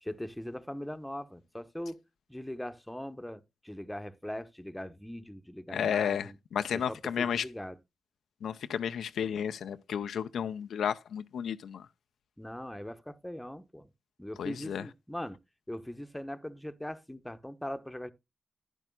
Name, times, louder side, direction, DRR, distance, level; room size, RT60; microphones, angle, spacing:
voice 1, 0.0-2.0 2.3-6.4 6.7-7.8 12.4-13.9 14.2-15.4 15.7-18.1, left 1 dB, 10° left, 0.9 m, -40 dB
voice 2, 5.7-7.4 8.4-11.8 14.4-14.8, left 8 dB, 80° left, 0.4 m, -32 dB
10.5 x 9.9 x 2.2 m
supercardioid pair, 40°, 0 cm